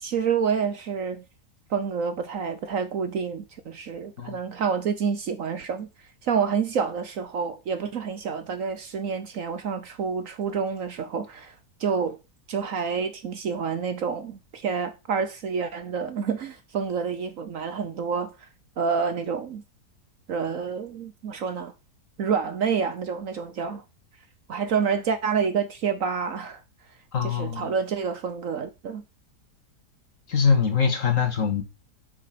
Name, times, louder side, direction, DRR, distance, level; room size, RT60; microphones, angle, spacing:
voice 1, 0.0-1.2 1.7-5.9 6.2-11.5 11.8-12.2 12.5-18.5 18.8-19.6 20.3-21.7 22.2-23.8 24.5-26.6 27.2-29.0, right 6 dB, 60° right, 1.1 m, -28 dB
voice 2, 27.1-27.7 30.3-31.6, left 6 dB, 50° left, 2.0 m, -23 dB
7.6 x 6.3 x 5.9 m
omnidirectional pair, 1.8 m